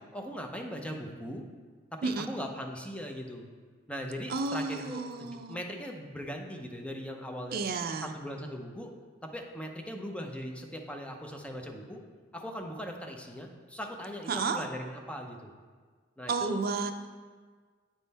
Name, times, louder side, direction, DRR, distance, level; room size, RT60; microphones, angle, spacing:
voice 1, 0.1-1.4 2.0-3.5 3.9-7.6 8.0-8.9 9.3-12.0 12.3-15.5 16.2-16.6, equal, 5° left, 2 dB, 0.6 m, -39 dB
voice 2, 4.3-5.6 7.5-8.1 14.3-14.6 16.3-16.9, right 4 dB, 55° right, 6 dB, 0.5 m, -32 dB
8.6 x 3.7 x 4.1 m, 1.5 s
head